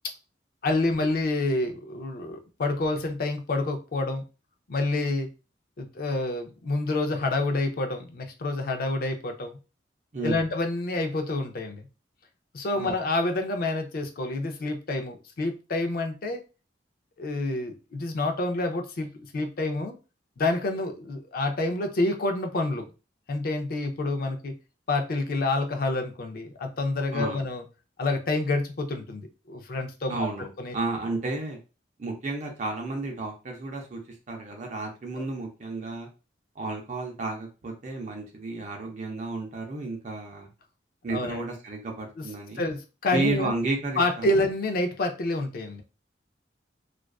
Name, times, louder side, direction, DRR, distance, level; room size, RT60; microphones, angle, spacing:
voice 1, 0.6-4.3 4.7-5.3 5.8-9.6 10.2-11.9 12.5-16.4 17.2-19.9 20.4-22.9 23.3-24.5 24.9-27.6 28.0-30.3 30.6-30.7 35.2-35.3 41.1-41.4 42.2-42.3 42.6-43.5 44.0-45.8, left 2 dB, 55° left, 0.4 m, -28 dB
voice 2, 10.1-10.4 12.8-13.0 27.1-27.4 30.1-31.6 32.0-34.0 34.3-36.1 36.6-40.5 41.0-42.7 43.1-44.4, right 3 dB, 40° right, 0.5 m, -32 dB
2.4 x 2.2 x 2.3 m
head